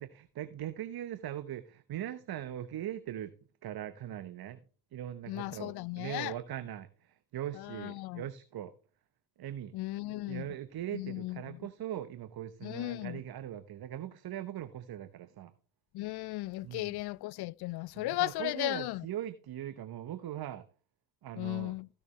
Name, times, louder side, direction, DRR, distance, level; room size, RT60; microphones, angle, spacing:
voice 1, 0.0-3.3 3.6-4.6 4.9-8.7 9.4-9.7 10.3-15.5 16.6-16.9 17.9-20.6 21.2-21.7, right 11 dB, 50° right, 0.9 m, -40 dB
voice 2, 5.3-6.3 7.5-8.2 9.7-10.5 10.9-11.7 12.6-13.2 15.9-19.1 21.4-21.9, left 19 dB, 55° left, 0.5 m, -36 dB
15.0 x 6.7 x 3.2 m
hypercardioid pair, 45°, 49 cm